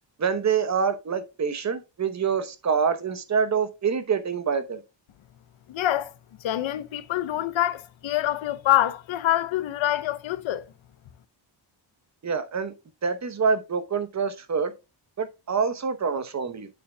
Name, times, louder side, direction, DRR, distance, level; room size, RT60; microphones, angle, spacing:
voice 1, 0.2-4.8 12.2-12.7 13.0-14.7 15.2-16.7, right 6 dB, 35° right, 1.0 m, -26 dB
voice 2, 5.7-6.1 6.4-10.6, left 13 dB, 85° left, 0.9 m, -25 dB
8.6 x 7.1 x 2.3 m
wide cardioid pair, 165°, 45 cm